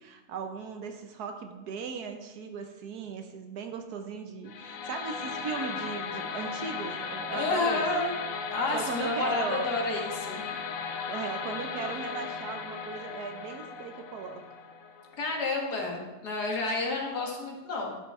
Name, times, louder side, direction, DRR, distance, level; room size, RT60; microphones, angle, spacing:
voice 1, 0.0-7.9 8.7-9.7 11.1-14.4, right 5 dB, 80° right, 6 dB, 1.4 m, -37 dB
sound 1, 4.5-15.5, left 6 dB, 65° left, 1.0 m, -37 dB
voice 2, 7.3-8.1 8.5-10.4 15.2-18.0, left 2 dB, 80° left, 0 dB, 2.1 m, -30 dB
11.5 x 5.7 x 4.3 m, 1.1 s
omnidirectional pair, 1.7 m